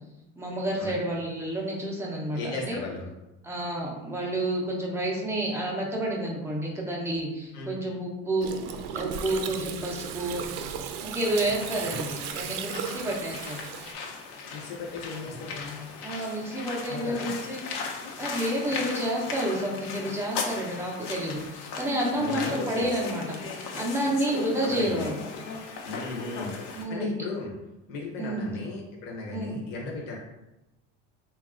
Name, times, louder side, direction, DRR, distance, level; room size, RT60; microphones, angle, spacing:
voice 1, 0.4-2.8 3.4-8.5 8.9-10.4 11.0-13.6 16.0-17.7 18.2-25.2 26.7-27.1 28.2-28.5 29.3-29.6, right 1 dB, 10° right, -2 dB, 0.4 m, -30 dB
voice 2, 2.3-3.1 7.5-7.8 14.5-15.9 16.9-17.3 22.1-22.9 24.6-25.0 25.8-27.5 27.9-30.2, left 3 dB, 35° left, -3 dB, 0.7 m, -36 dB
Gurgling, 8.4-13.9, right 8 dB, 85° right, 0.5 m, -36 dB
sound 1, 11.2-26.8, left 4 dB, 90° left, 0.8 m, -38 dB
3.9 x 2.3 x 3.6 m, 0.96 s
cardioid pair, 175°, 30 cm